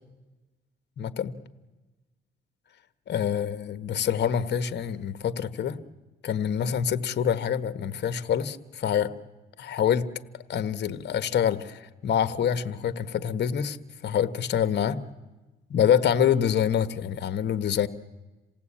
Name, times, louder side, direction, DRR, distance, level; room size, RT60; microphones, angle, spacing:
voice 1, 1.0-1.3 3.1-5.8 6.2-9.1 9.6-10.1 10.5-13.8 14.0-15.0 15.7-17.9, left 8 dB, 60° left, 13 dB, 1.3 m, -26 dB
27.5 x 17.5 x 8.7 m, 1.2 s
cardioid pair, 90°, 20 cm